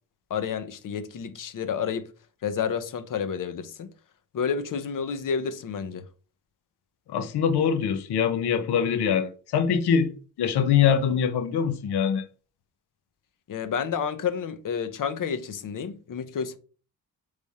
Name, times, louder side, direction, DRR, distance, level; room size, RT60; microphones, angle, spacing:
voice 1, 0.3-2.1 2.4-3.9 4.3-6.1 13.5-16.6, left 7 dB, 55° left, 0.7 m, -30 dB
voice 2, 7.1-10.1 10.4-12.2, left 7 dB, 85° left, 0.8 m, -23 dB
3.5 x 3.3 x 4.1 m
cardioid pair, 105°, 38 cm